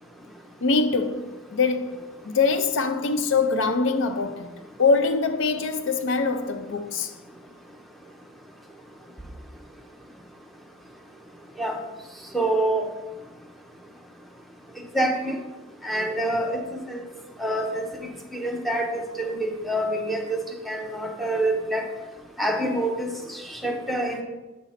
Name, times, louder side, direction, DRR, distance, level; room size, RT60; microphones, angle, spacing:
voice 1, 0.6-7.1, left 4 dB, 60° left, 0.4 m, -24 dB
voice 2, 12.3-12.9 14.9-15.4 15.8-17.0 17.4-17.8 18.3-20.4 20.7-21.8 22.4-24.2, right 1 dB, ahead, 0.8 m, -26 dB
7.4 x 4.0 x 5.7 m
head